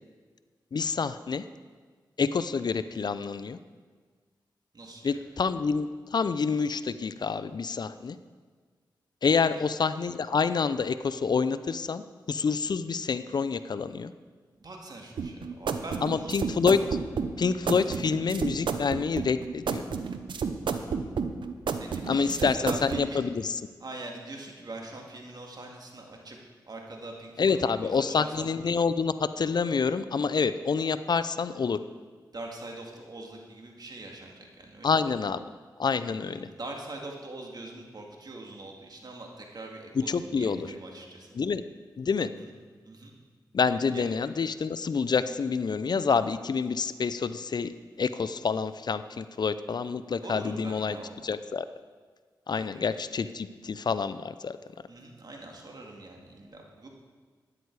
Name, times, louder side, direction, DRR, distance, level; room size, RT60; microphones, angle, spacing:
voice 1, 0.7-1.4 2.2-3.6 5.0-8.2 9.2-14.1 16.0-16.8 17.4-19.8 22.1-23.6 27.4-31.8 34.8-35.4 35.8-36.5 40.1-40.7 41.4-41.6 42.0-42.3 43.5-47.7 48.0-51.0 51.2-51.6 52.5-54.6, left 5 dB, 60° left, 13 dB, 0.5 m, -27 dB
voice 2, 4.7-5.1 9.3-9.7 14.5-16.4 21.8-23.3 23.8-26.4 26.7-28.5 32.3-35.0 36.0-41.4 42.3-42.5 42.8-43.1 43.9-44.1 50.2-51.2 52.5-52.8 54.9-56.9, right 2 dB, 55° right, 1 dB, 2.3 m, -43 dB
sound 1, 15.2-23.0, right 5 dB, 80° right, 0.7 m, -31 dB
12.5 x 9.8 x 4.8 m, 1.5 s
cardioid pair, 50°, 8 cm